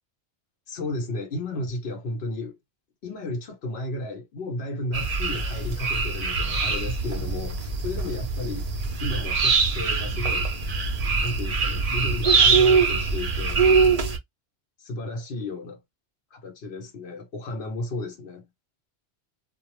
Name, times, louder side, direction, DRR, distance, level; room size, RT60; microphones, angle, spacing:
voice 1, 0.7-2.6 3.0-8.7 9.0-10.5 11.2-13.6 14.8-15.8 16.3-18.5, left 2 dB, 65° left, 1.1 m, -33 dB
sound 1, 4.9-14.2, right 4 dB, 45° right, 0.5 m, -23 dB
2.4 x 2.0 x 3.0 m
omnidirectional pair, 1.1 m